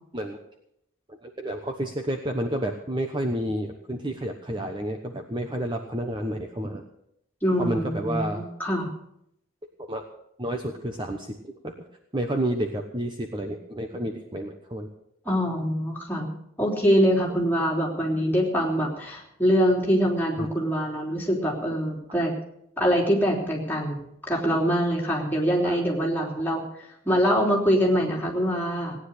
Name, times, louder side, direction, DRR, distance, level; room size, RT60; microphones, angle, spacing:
voice 1, 1.1-6.8 7.6-8.4 9.8-10.0 10.4-11.6 12.1-14.9 15.3-15.4 20.4-20.5 25.6-25.8 26.2-26.3, right 1 dB, 20° right, 4 dB, 1.0 m, -30 dB
voice 2, 7.4-8.9 15.3-16.3 16.6-22.3 22.8-24.0 24.3-29.0, equal, 10° left, -3 dB, 3.3 m, -24 dB
18.0 x 10.0 x 6.6 m, 0.76 s
head